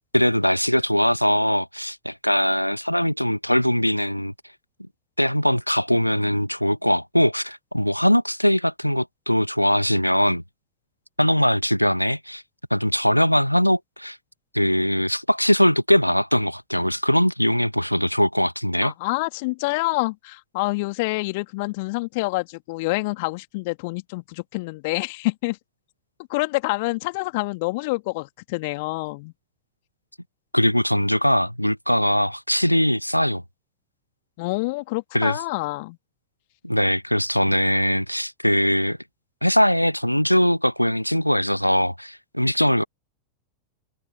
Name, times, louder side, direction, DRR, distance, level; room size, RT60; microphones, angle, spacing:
voice 1, 0.1-4.3 5.2-10.4 11.2-12.4 12.7-14.2 14.5-18.9 30.5-33.4 35.1-35.4 36.6-39.0 39.4-42.8, equal, 90° left, 1.7 m, -21 dB
voice 2, 18.8-25.6 26.3-29.3 34.4-36.0, left 25 dB, 50° left, 2.9 m, -27 dB
figure-of-eight pair, 90°, 0 cm